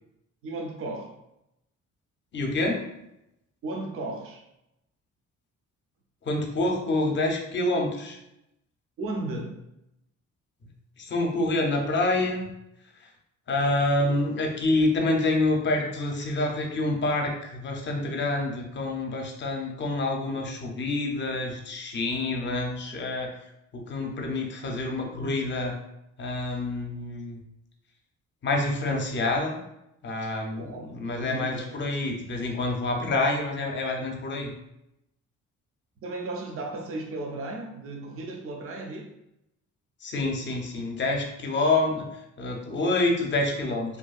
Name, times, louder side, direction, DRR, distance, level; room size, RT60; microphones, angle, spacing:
voice 1, 0.4-1.2 3.6-4.4 9.0-9.7 30.6-31.9 36.0-39.1, right 2 dB, 50° right, 2 dB, 0.5 m, -35 dB
voice 2, 2.3-2.9 6.2-8.2 11.0-12.4 13.5-23.3 23.7-25.8 26.2-27.4 28.4-29.6 30.0-34.5 40.0-42.1 42.4-44.0, left 2 dB, 40° left, 2 dB, 0.6 m, -27 dB
2.6 x 2.2 x 2.4 m, 0.85 s
cardioid pair, 90°, 30 cm